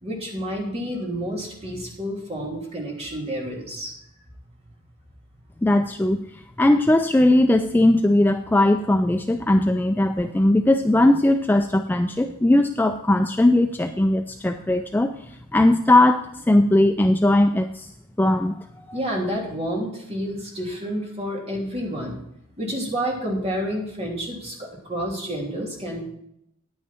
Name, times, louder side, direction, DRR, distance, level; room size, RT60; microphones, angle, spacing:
voice 1, 0.0-3.9 18.9-22.2 22.6-26.0, equal, 30° right, -2 dB, 3.1 m, -29 dB
voice 2, 5.6-17.9 18.2-18.5 18.9-19.0, left 1 dB, 10° left, 6 dB, 0.3 m, -19 dB
10.0 x 9.5 x 4.3 m, 0.76 s
head